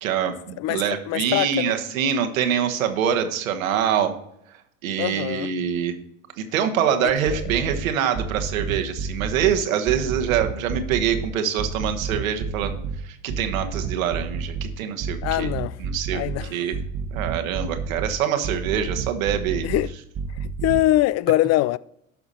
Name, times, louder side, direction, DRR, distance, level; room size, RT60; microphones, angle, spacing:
voice 1, 0.0-4.1 4.8-5.9 6.4-12.8 13.0-15.5 15.8-16.7 17.1-19.7, right 8 dB, 85° right, 1.3 m, -25 dB
voice 2, 0.6-1.8 5.0-5.5 7.0-7.1 15.2-15.8 16.1-16.6 19.6-19.9 20.4-21.8, left 15 dB, 40° left, 0.4 m, -23 dB
sound 1, 7.1-7.8 8.1-9.5 9.9-11.3 11.6-13.0 13.3-14.7 15.0-16.4 16.7-18.1 18.4-19.8 20.1-20.8, right 5 dB, 40° right, 1.2 m, -29 dB
11.5 x 5.9 x 4.2 m
hypercardioid pair, 85°, 40 cm